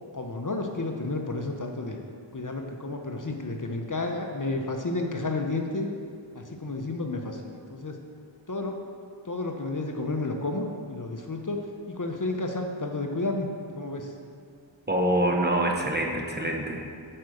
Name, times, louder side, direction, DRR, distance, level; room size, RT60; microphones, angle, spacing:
voice 1, 0.1-2.0 2.3-5.9 6.3-7.9 8.5-8.8 9.3-11.6 11.9-13.5 13.8-14.1, left 2 dB, 40° left, 3 dB, 0.8 m, -31 dB
voice 2, 14.9-16.9, right 1 dB, 20° right, 1 dB, 1.0 m, -25 dB
8.8 x 4.8 x 6.4 m, 2.3 s
wide cardioid pair, 50°, 47 cm